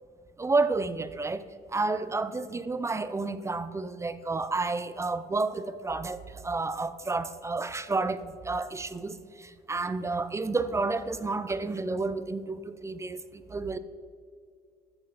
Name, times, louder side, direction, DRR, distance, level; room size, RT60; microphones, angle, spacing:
voice 1, 0.4-1.4 1.7-13.2 13.5-13.8, right 3 dB, 15° right, 14 dB, 0.4 m, -30 dB
13.5 x 6.6 x 3.9 m, 2.2 s
cardioid pair, 110°, 17 cm